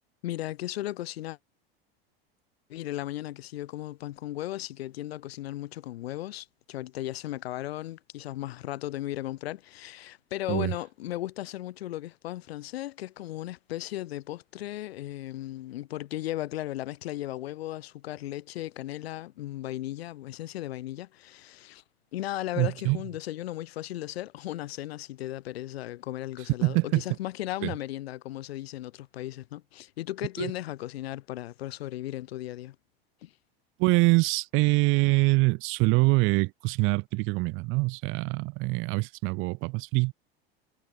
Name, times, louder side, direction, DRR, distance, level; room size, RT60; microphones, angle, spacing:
voice 1, 0.2-1.4 2.7-21.8 22.1-32.8 33.2-33.3, left 15 dB, 85° left, 1.0 m, -36 dB
voice 2, 22.6-23.0 26.6-27.0 27.6-27.7 30.4-30.5 33.8-40.1, right 26 dB, 45° right, 0.4 m, -24 dB
hypercardioid pair, 105°, 30 cm